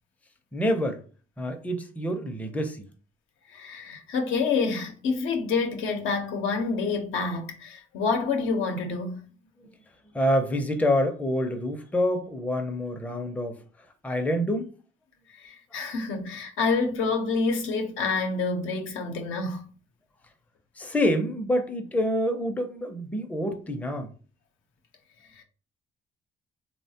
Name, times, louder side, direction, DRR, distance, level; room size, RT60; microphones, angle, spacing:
voice 1, 0.5-1.0 1.4-2.8 10.1-13.6 14.0-14.7 20.8-24.1, equal, 5° left, 0.4 m, -27 dB
voice 2, 3.5-9.3 15.4-19.7 25.4-25.5, left 4 dB, 80° left, 0.6 m, -28 dB
3.0 x 2.1 x 2.7 m
cardioid pair, 90°, 20 cm